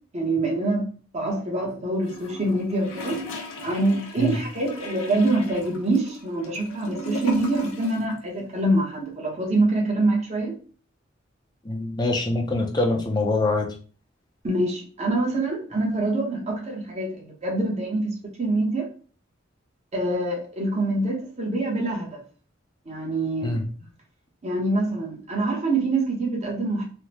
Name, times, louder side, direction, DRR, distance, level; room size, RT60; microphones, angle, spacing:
voice 1, 0.1-0.9 1.1-3.2 3.6-10.6 14.4-18.9 19.9-22.2 22.9-23.6 24.4-26.8, right 2 dB, 35° right, -1 dB, 0.9 m, -25 dB
Gurgling / Toilet flush, 2.0-8.1 8.4-8.5, equal, 90° left, 0.7 m, -36 dB
voice 2, 11.6-13.7 23.4-23.6, left 2 dB, 20° left, 1 dB, 0.5 m, -24 dB
3.4 x 2.1 x 2.9 m, 0.40 s
head